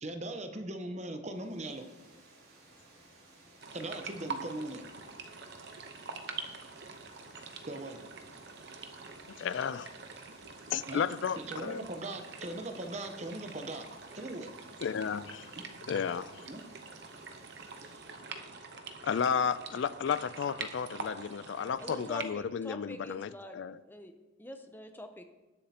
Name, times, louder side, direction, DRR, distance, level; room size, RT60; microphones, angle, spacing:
voice 1, 0.0-1.8 3.7-4.9 7.7-8.0 10.9-11.0 11.4-13.8 14.1-14.5 15.5-15.6 16.5-16.6, right 1 dB, 35° right, 6 dB, 0.9 m, -39 dB
Water, 1.2-18.4, right 2 dB, 85° right, 4.0 m, -59 dB
sound 1, 3.6-22.3, right 4 dB, 55° right, 0.9 m, -45 dB
voice 2, 9.4-9.9 10.7-11.8 14.8-15.5 15.9-16.4 19.0-23.8, left 7 dB, 60° left, 15 dB, 0.3 m, -33 dB
voice 3, 21.8-23.6 23.9-24.1 24.4-25.2, equal, 10° left, 6 dB, 0.7 m, -44 dB
19.5 x 7.3 x 2.9 m, 1.1 s
head